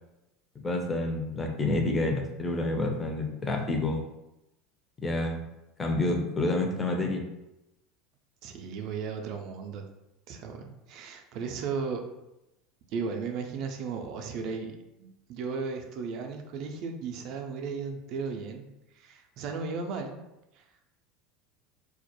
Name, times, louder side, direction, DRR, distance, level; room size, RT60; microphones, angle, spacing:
voice 1, 0.6-4.0 5.0-5.4 5.8-7.2, left 2 dB, 20° left, 2 dB, 0.5 m, -28 dB
voice 2, 8.4-9.8 10.3-12.0 12.9-18.6 19.0-20.2, right 5 dB, 55° right, 4 dB, 0.3 m, -35 dB
2.2 x 2.0 x 2.9 m, 0.92 s
figure-of-eight pair, 75°, 0 cm